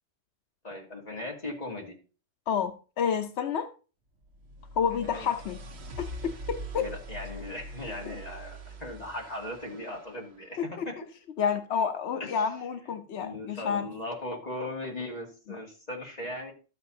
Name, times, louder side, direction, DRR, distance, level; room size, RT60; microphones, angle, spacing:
voice 1, 0.6-2.0 5.0-5.3 6.8-11.0 12.2-12.4 13.2-16.5, left 1 dB, 40° left, 2.4 m, -38 dB
voice 2, 2.5-3.7 4.8-5.6 6.0-6.9 8.1-8.2 10.8-10.9 11.4-13.9, left 7 dB, 85° left, 1.0 m, -29 dB
sound 1, 4.2-10.3, right 1 dB, 80° right, 1.2 m, -43 dB
12.5 x 7.8 x 2.7 m
omnidirectional pair, 1.1 m